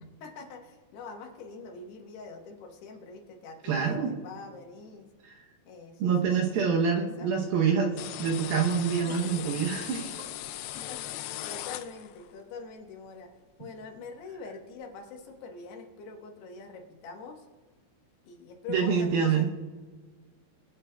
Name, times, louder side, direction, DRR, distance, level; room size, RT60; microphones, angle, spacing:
voice 1, 0.2-5.1 5.7-7.5 9.1-9.6 10.7-13.3 13.6-17.5 18.3-19.5, left 4 dB, 75° left, 3 dB, 3.0 m, -44 dB
voice 2, 3.6-4.1 5.2-5.4 6.0-10.1 18.7-19.5, right 6 dB, 75° right, 0 dB, 2.3 m, -26 dB
sound 1, 8.0-12.3, left 13 dB, 90° left, 2.2 m, -39 dB
22.5 x 8.9 x 2.2 m, 1.4 s
omnidirectional pair, 5.1 m